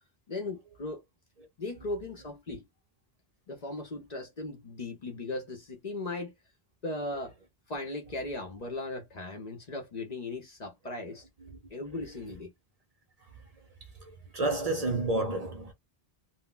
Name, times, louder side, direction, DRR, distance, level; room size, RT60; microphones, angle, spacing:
voice 1, 0.3-1.0 1.6-2.6 3.5-6.3 6.8-7.3 7.7-11.2 11.7-12.5, left 2 dB, 50° left, 0.7 m, -37 dB
voice 2, 14.0-15.7, right 2 dB, 45° right, 0.6 m, -30 dB
2.1 x 2.1 x 3.7 m
omnidirectional pair, 1.0 m